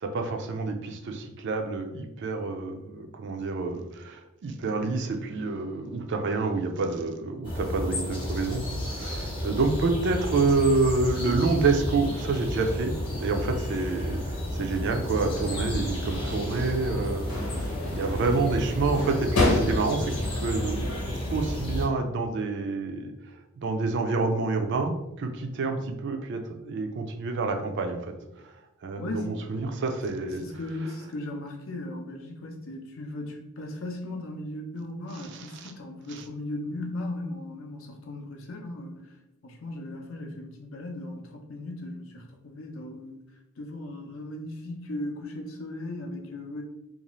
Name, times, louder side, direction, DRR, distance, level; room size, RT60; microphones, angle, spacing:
voice 1, 0.0-12.9 13.2-20.9 21.3-23.1 23.6-28.1 28.4-28.5 28.8-30.4 35.6-35.7 36.1-36.2, right 3 dB, 55° right, 5 dB, 0.4 m, -28 dB
sound 1, 7.4-21.9, left 1 dB, 25° left, 0.7 m, -32 dB
sound 2, 15.1-21.0, left 1 dB, 85° left, 0.9 m, -31 dB
voice 2, 29.0-29.3 30.4-39.1 39.4-43.2 43.6-46.6, left 1 dB, 60° left, 1 dB, 0.6 m, -37 dB
2.6 x 2.3 x 3.0 m, 0.89 s
head